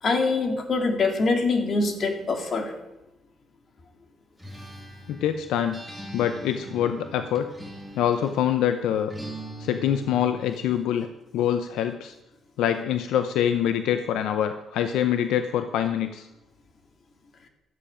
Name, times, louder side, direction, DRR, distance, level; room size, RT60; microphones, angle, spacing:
voice 1, 0.0-2.7, left 3 dB, 50° left, 4 dB, 2.1 m, -24 dB
Acoustic guitar, 4.4-8.5 9.1-10.7, right 1 dB, 5° left, 3.1 m, -41 dB
voice 2, 5.1-5.8 6.1-7.5 8.0-9.1 9.6-11.1 11.3-12.1 12.6-16.3, left 10 dB, 90° left, 9 dB, 0.6 m, -25 dB
12.5 x 8.8 x 5.0 m, 0.93 s
cardioid pair, 90°, 0 cm